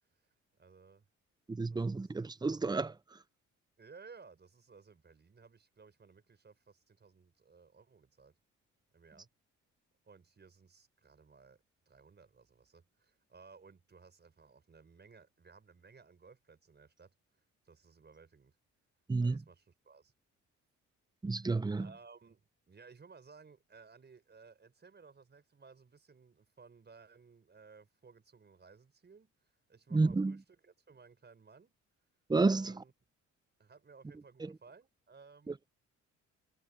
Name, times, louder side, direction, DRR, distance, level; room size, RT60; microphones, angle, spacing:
voice 1, 0.2-1.1 1.7-2.0 3.8-8.4 8.9-9.3 10.0-17.1 17.6-18.6 19.2-20.1 21.3-21.5 21.8-29.3 29.7-31.7 32.5-32.9 33.6-35.6, right 5 dB, 35° right, 5.5 m, -59 dB
voice 2, 1.5-3.0 19.1-19.4 21.2-21.9 29.9-30.3 32.3-32.8 34.4-34.5 35.5-35.6, right 3 dB, 15° right, 0.7 m, -31 dB
cardioid pair, 90°, 30 cm